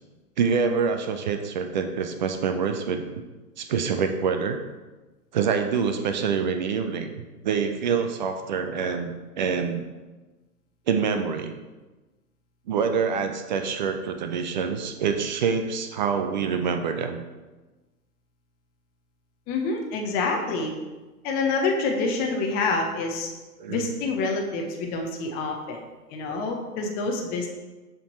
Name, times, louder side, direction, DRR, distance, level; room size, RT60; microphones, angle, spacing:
voice 1, 0.4-3.0 3.6-4.6 5.3-9.9 10.9-11.6 12.7-17.2 23.6-23.9 26.3-26.4, right 6 dB, 30° right, 6 dB, 0.4 m, -26 dB
voice 2, 19.5-20.7 21.2-23.3 23.7-25.8 26.1-27.5, left 3 dB, 20° left, 2 dB, 0.7 m, -27 dB
7.1 x 3.7 x 4.3 m, 1.2 s
hypercardioid pair, 120°, 47 cm